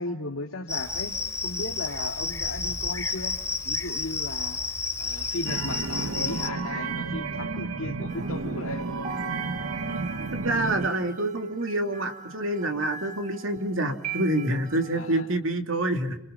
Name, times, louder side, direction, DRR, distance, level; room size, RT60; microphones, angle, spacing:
voice 1, 0.0-3.4 3.6-4.6 5.0-8.8 14.9-15.3, left 2 dB, 85° left, 1 dB, 2.1 m, -36 dB
Cricket, 0.7-6.5, left 3 dB, 15° left, 3.5 m, -31 dB
sound 1, 5.4-10.9, right 3 dB, 85° right, 1.5 m, -32 dB
sound 2, 8.1-15.2, right 5 dB, 35° right, 2.2 m, -42 dB
voice 2, 10.3-16.2, right 1 dB, 70° right, 5 dB, 3.2 m, -27 dB
29.5 x 28.0 x 5.6 m, 0.79 s
head